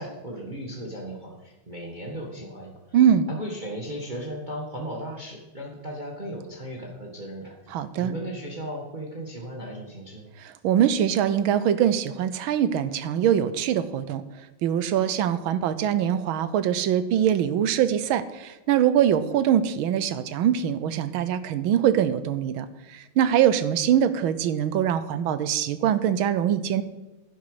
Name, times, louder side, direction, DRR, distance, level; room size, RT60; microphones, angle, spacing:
voice 1, 0.0-3.0 3.3-10.3, equal, 25° right, -1 dB, 1.4 m, -36 dB
voice 2, 2.9-3.3 7.7-8.1 10.4-14.2 14.6-26.8, right 9 dB, 75° right, 13 dB, 1.5 m, -23 dB
11.0 x 10.0 x 4.9 m, 1.1 s
omnidirectional pair, 2.4 m